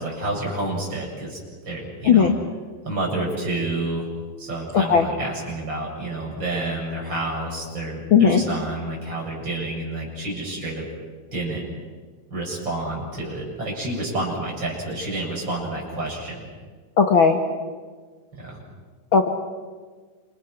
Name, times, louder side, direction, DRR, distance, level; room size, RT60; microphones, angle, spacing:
voice 1, 0.0-1.4 1.6-2.3 2.8-4.1 4.4-10.9 11.3-11.6 12.3-16.5 18.3-18.6, right 2 dB, 30° right, -2 dB, 8.1 m, -29 dB
voice 2, 4.7-5.1 8.1-8.4 17.0-17.4 19.1-19.3, left 6 dB, 50° left, 4 dB, 1.8 m, -16 dB
29.0 x 28.0 x 6.1 m, 1.5 s
omnidirectional pair, 3.9 m